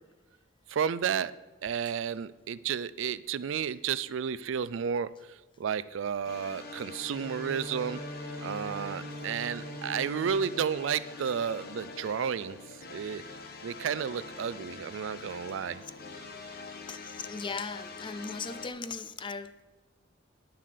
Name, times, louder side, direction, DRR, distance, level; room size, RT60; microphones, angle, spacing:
voice 1, 0.7-1.3 1.6-5.1 5.6-8.0 8.4-12.6 12.9-13.2 13.6-15.8, right 7 dB, 80° right, 0.4 m, -32 dB
sound 1, 6.2-18.7, left 3 dB, 55° left, 1.1 m, -44 dB
Bowed string instrument, 6.4-11.9, equal, 15° right, 0.8 m, -44 dB
voice 2, 16.9-19.6, left 4 dB, 25° left, 0.4 m, -38 dB
9.4 x 7.4 x 6.7 m
head